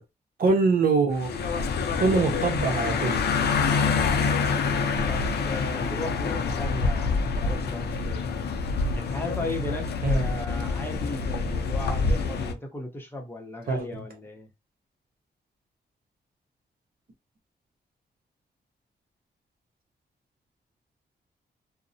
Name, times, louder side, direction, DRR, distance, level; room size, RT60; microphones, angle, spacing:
voice 1, 0.4-1.3 2.0-3.2 10.0-10.2 13.7-14.0, right 4 dB, 55° right, 0.7 m, -23 dB
sound 1, 1.1-12.5, left 4 dB, 65° left, 0.4 m, -26 dB
voice 2, 3.8-8.2 9.0-14.5, left 2 dB, 10° left, 0.7 m, -36 dB
2.6 x 2.0 x 2.6 m
wide cardioid pair, 155°, 18 cm